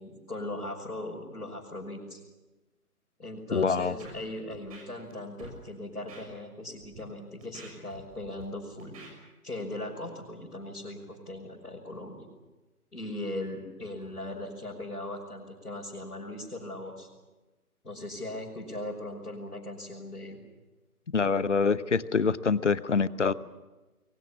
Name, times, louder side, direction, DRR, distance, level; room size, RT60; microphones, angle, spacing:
voice 1, 0.0-2.2 3.2-8.9 9.4-12.3 12.9-17.1 17.8-20.4, left 1 dB, 80° left, -4 dB, 6.1 m, -39 dB
voice 2, 3.5-4.0 21.1-23.3, left 5 dB, 50° left, 17 dB, 1.0 m, -25 dB
Scratching (performance technique), 4.0-4.2 4.5-5.1 5.4-5.6 6.1-6.2 6.8-7.0 7.4-8.4 8.8-9.1, right 3 dB, 25° right, 6.3 m, -48 dB
27.0 x 23.0 x 7.2 m, 1.1 s
figure-of-eight pair, 145°, 45 cm